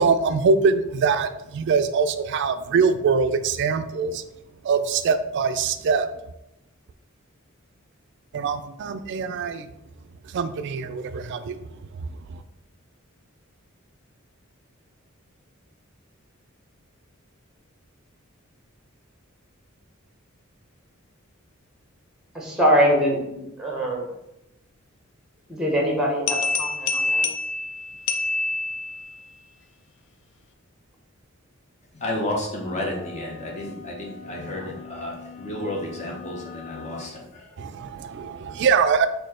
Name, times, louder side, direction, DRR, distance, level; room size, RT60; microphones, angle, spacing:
voice 1, 0.0-4.2 4.6-6.1 8.3-9.7 10.2-11.7 12.0-12.4 37.6-39.1, right 5 dB, 55° right, 0.3 m, -23 dB
voice 2, 22.3-24.1 25.5-27.3 34.3-34.7, equal, 5° right, 0.9 m, -23 dB
sound 1, 26.3-29.2, left 3 dB, 60° left, 0.4 m, -26 dB
voice 3, 31.9-37.6, left 1 dB, 35° left, 0.8 m, -32 dB
sound 2, 32.6-37.2, left 7 dB, 85° left, 1.0 m, -42 dB
4.3 x 2.7 x 4.2 m
head